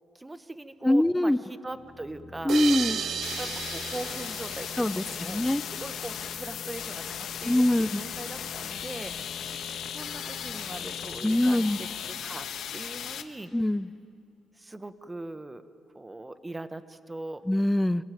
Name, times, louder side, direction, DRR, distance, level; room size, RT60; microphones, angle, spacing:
voice 1, 0.1-2.5 3.4-9.1 9.9-13.5 14.6-15.6 15.9-17.4, right 2 dB, 15° right, 11 dB, 1.1 m, -41 dB
voice 2, 0.8-1.4 2.4-3.0 4.8-5.6 7.5-8.0 11.2-11.8 13.5-13.9 17.5-18.0, left 1 dB, 10° left, 16 dB, 0.5 m, -23 dB
sound 1, 1.6-13.1, left 4 dB, 40° left, 1.9 m, -48 dB
sound 2, 2.5-5.8, right 7 dB, 65° right, 1.0 m, -34 dB
sound 3, 3.2-13.2, left 9 dB, 75° left, 1.2 m, -37 dB
26.0 x 16.5 x 9.1 m, 2.5 s
cardioid pair, 90°, 0 cm